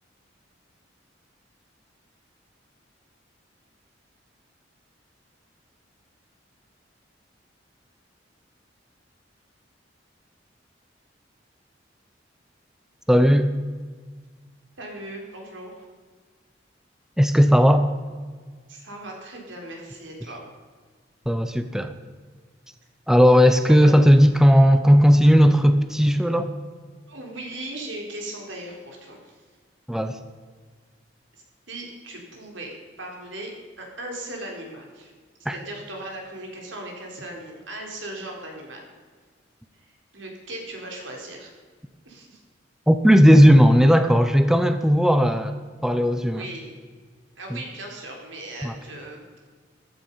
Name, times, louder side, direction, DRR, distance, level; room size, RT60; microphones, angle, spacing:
voice 1, 13.1-13.5 17.2-17.9 21.3-21.9 23.1-26.5 29.9-30.2 35.5-35.6 42.9-46.4 48.6-48.8, equal, 5° right, 9 dB, 0.7 m, -16 dB
voice 2, 14.8-15.8 18.7-20.4 23.7-24.0 27.1-29.4 31.7-33.5 33.8-35.1 35.5-38.8 39.8-39.9 40.1-41.5 42.0-42.4 46.1-46.8 47.4-49.4, right 1 dB, 90° right, 0 dB, 4.1 m, -38 dB
14.5 x 12.5 x 5.6 m, 1.5 s
head